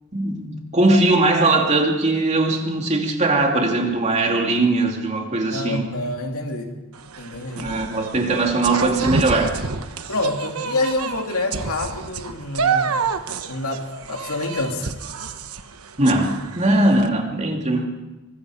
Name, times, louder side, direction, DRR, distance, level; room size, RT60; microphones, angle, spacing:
voice 1, 0.1-5.9 7.6-9.6 16.0-17.9, right 2 dB, 30° right, 1 dB, 2.8 m, -20 dB
voice 2, 5.5-6.7 7.2-7.7 10.1-13.0 13.5-14.9, left 2 dB, 75° left, 2 dB, 3.0 m, -27 dB
sound 1, 6.9-17.1, right 5 dB, 80° right, 1.2 m, -29 dB
24.5 x 21.0 x 5.1 m, 1.1 s
head